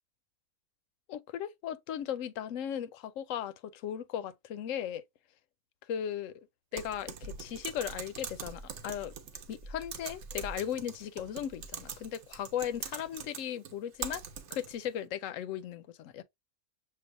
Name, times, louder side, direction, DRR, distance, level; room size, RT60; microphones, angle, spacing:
voice 1, 1.1-5.0 5.9-6.5 6.7-9.1 9.5-14.2 14.5-16.2, left 10 dB, 70° left, 0.9 m, -37 dB
Typing, 6.8-14.9, right 6 dB, 60° right, 1.0 m, -43 dB
6.6 x 2.4 x 2.5 m
omnidirectional pair, 1.5 m